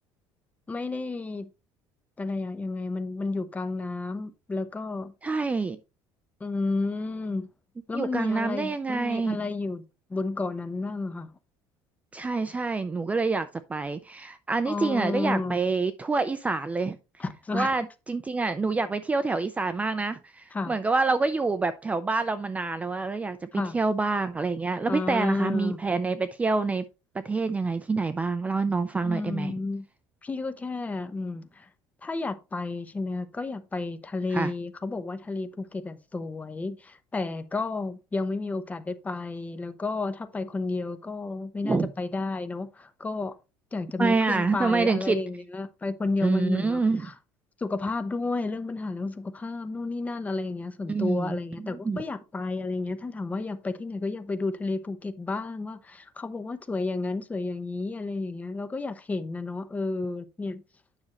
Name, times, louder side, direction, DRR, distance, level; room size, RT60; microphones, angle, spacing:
voice 1, 0.7-1.5 2.2-5.1 6.4-7.5 7.9-9.8 10.1-11.3 14.6-15.6 17.2-17.7 20.5-20.7 23.5-23.8 24.9-25.8 29.0-29.9 30.2-31.7 32.0-43.3 43.7-47.1 47.6-60.6, left 3 dB, 15° left, 0.8 m, -31 dB
voice 2, 5.2-5.8 7.9-9.4 12.1-17.0 17.5-26.8 27.1-29.5 34.3-34.5 41.6-41.9 44.0-45.2 46.2-47.1 50.9-51.4 51.8-52.0, right 4 dB, 15° right, 0.5 m, -27 dB
9.8 x 6.2 x 3.0 m
cardioid pair, 140°, 10 cm